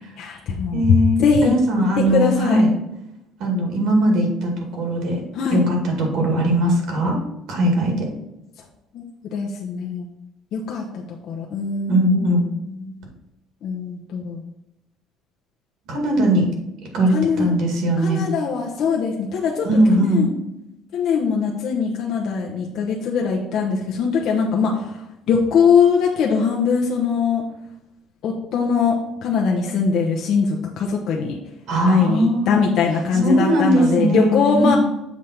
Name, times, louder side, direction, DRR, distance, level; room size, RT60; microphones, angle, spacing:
voice 1, 0.2-2.6 5.3-5.6 8.9-9.1 9.3-10.1 10.5-12.4 12.7-12.9 13.6-14.4 17.1-17.5 18.0-19.7 20.1-20.3 20.9-25.0 25.3-27.4 28.2-29.0 29.2-31.4 31.9-34.8, left 5 dB, 50° left, -1 dB, 0.9 m, -21 dB
voice 2, 0.7-2.7 3.4-5.2 5.5-7.2 7.5-8.1 11.9-12.5 15.9-16.5 16.8-18.2 19.6-20.3 31.7-32.6 33.1-34.8, right 1 dB, 60° right, 1 dB, 2.0 m, -19 dB
7.3 x 3.3 x 5.7 m, 0.89 s
cardioid pair, 170°, 0 cm